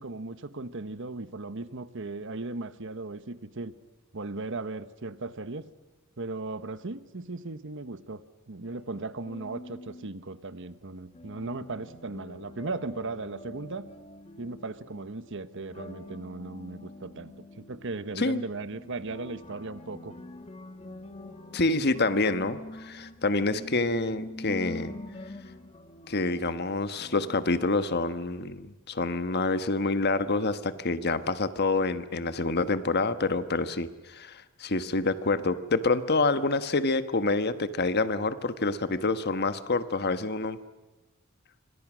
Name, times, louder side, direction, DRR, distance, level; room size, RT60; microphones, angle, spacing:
voice 1, 0.0-3.7 4.1-5.7 6.2-13.9 14.4-20.2, right 3 dB, 60° right, 13 dB, 1.2 m, -37 dB
sound 1, 8.6-10.1 11.1-27.4, left 1 dB, 30° left, 2.0 m, -45 dB
voice 2, 21.5-25.0 26.1-40.6, left 3 dB, 50° left, 12 dB, 1.3 m, -27 dB
27.0 x 25.5 x 6.3 m, 1.1 s
head